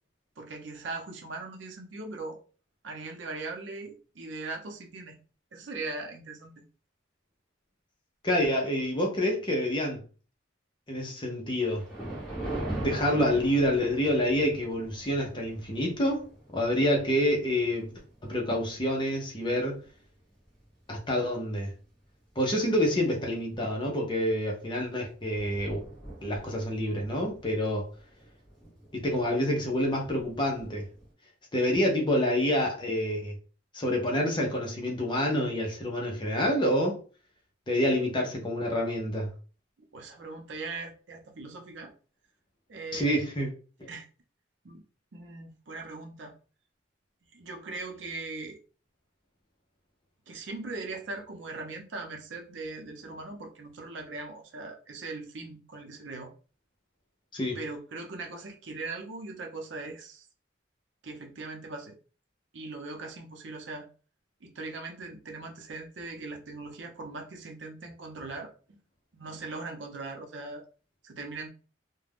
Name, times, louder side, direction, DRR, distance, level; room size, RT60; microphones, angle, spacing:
voice 1, 0.4-2.4 2.8-5.2 5.5-6.5 39.9-41.9 42.7-43.3 43.9-44.1 44.6-44.8 45.1-46.3 47.3-48.6 50.3-56.3 57.5-60.3 61.0-61.9 62.5-63.9 64.4-68.8 69.1-70.6 71.0-71.5, right 3 dB, 75° right, 0.6 m, -40 dB
voice 2, 8.2-10.0 10.9-11.8 12.8-16.3 16.5-17.9 18.2-19.8 20.9-21.7 22.4-25.8 26.2-27.9 28.9-30.9 31.5-33.3 33.7-37.0 37.7-39.3 42.9-43.5 57.3-57.6, equal, 25° left, 0.7 m, -27 dB
Thunder, 11.6-20.1 20.7-20.9 21.6-21.7 22.1-22.2 24.3-24.5 24.9-25.0 25.1-31.1, right 1 dB, 5° left, 1.2 m, -42 dB
2.4 x 2.2 x 3.4 m
head